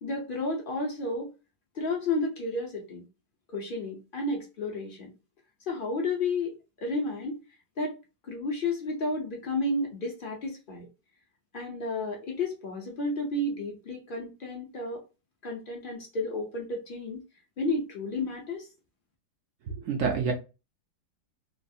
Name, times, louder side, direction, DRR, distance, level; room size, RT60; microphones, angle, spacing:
voice 1, 0.0-1.3 1.7-3.0 3.5-5.1 5.7-7.4 7.8-8.0 8.2-10.9 11.5-15.0 15.4-17.2 17.6-18.7, left 2 dB, 60° left, 0.5 m, -32 dB
voice 2, 19.7-20.3, right 5 dB, 70° right, 0.7 m, -28 dB
3.1 x 2.4 x 2.6 m
omnidirectional pair, 2.0 m